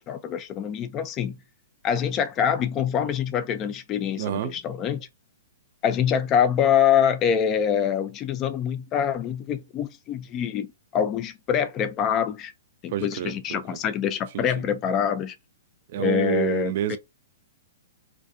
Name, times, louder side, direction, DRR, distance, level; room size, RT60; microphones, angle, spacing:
voice 1, 0.1-1.4 1.8-5.1 5.8-10.7 10.9-12.5 12.8-15.4 16.0-17.0, left 8 dB, 25° left, 0.4 m, -25 dB
voice 2, 4.2-4.5 12.9-13.8 14.3-14.5 15.9-17.0, right 11 dB, 55° right, 0.4 m, -28 dB
2.3 x 2.2 x 2.6 m
hypercardioid pair, 145°, 0 cm